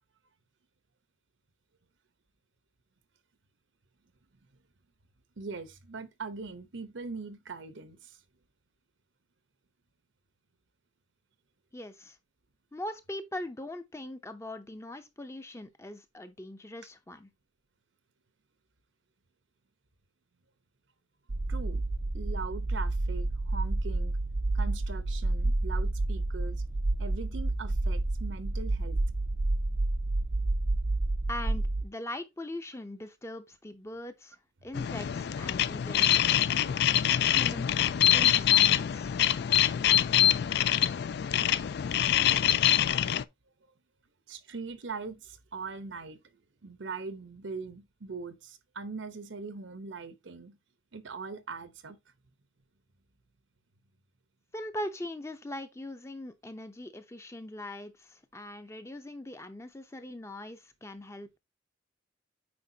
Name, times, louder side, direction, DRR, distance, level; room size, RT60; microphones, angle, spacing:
voice 1, 5.4-8.2 21.5-21.8 22.1-24.2 24.5-26.6 27.0-29.0 35.5-35.7 44.3-50.6 50.9-52.0, right 4 dB, 80° right, 0.9 m, -41 dB
voice 2, 11.7-12.2 12.7-17.3 31.3-34.4 34.6-36.1 37.3-37.7 38.1-39.2 54.5-61.4, left 1 dB, 15° left, 0.6 m, -41 dB
sound 1, 21.3-31.8, right 2 dB, 35° right, 0.4 m, -29 dB
sound 2, 34.7-43.2, left 11 dB, 60° left, 0.3 m, -25 dB
8.6 x 4.7 x 2.8 m
head